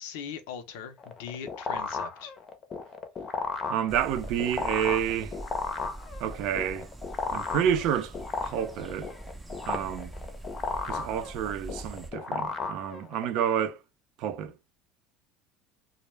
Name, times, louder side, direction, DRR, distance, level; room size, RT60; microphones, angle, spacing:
voice 1, 0.0-2.3, left 7 dB, 80° left, 0.5 m, -40 dB
sound 1, 1.0-13.4, left 5 dB, 35° left, 0.6 m, -34 dB
voice 2, 3.7-5.3 6.2-6.9 7.3-8.1 8.4-9.1 9.7-10.1 10.9-13.8 14.2-14.5, right 9 dB, 65° right, 0.4 m, -29 dB
sound 2, 3.9-12.1, right 1 dB, 10° right, 0.5 m, -43 dB
2.2 x 2.0 x 3.1 m
supercardioid pair, 110°, 0 cm